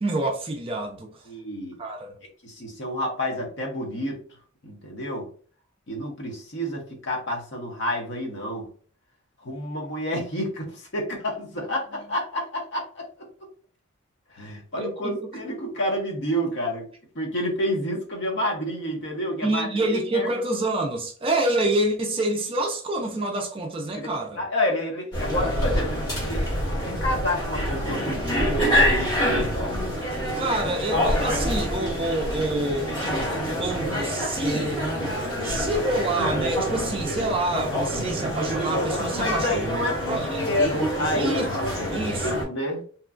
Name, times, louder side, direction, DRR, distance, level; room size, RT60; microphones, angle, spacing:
voice 1, 0.0-1.2 1.8-2.2 14.7-15.3 19.4-24.4 30.3-33.0 33.6-34.8 35.4-39.6 40.1-40.4 41.1-41.5 41.9-42.4, right 2 dB, 25° right, 0.4 m, -27 dB
voice 2, 1.3-1.8 2.4-4.2 4.6-5.3 5.9-8.7 9.4-13.1 14.3-16.9 17.1-20.3 23.9-26.5 26.8-29.9 39.1-42.8, left 1 dB, 55° left, 0.8 m, -29 dB
sound 1, 25.1-42.4, equal, 20° left, 1.2 m, -26 dB
2.9 x 2.3 x 2.4 m
head